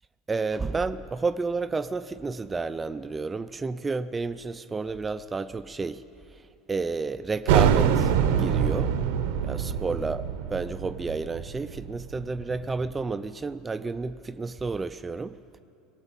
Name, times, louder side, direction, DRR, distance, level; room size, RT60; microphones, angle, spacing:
voice 1, 0.3-6.0 6.7-8.9 9.4-15.6, right 4 dB, 20° right, 13 dB, 0.4 m, -31 dB
sound 1, 7.5-12.8, right 8 dB, 80° right, 0.8 m, -25 dB
19.0 x 8.1 x 9.0 m, 2.6 s
supercardioid pair, 115°, 0 cm